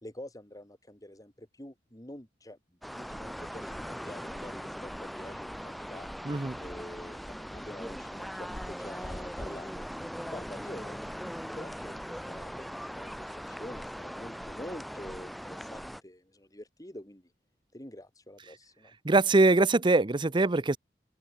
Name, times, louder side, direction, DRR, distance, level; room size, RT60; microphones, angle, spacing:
voice 1, 0.0-6.1 6.6-9.9 10.3-17.3 17.7-19.0, left 1 dB, 20° left, 3.9 m, -46 dB
sound 1, 2.8-16.0, equal, ahead, 0.9 m, -40 dB
voice 2, 6.2-6.6 19.0-20.8, right 2 dB, 25° right, 0.6 m, -23 dB
open air
head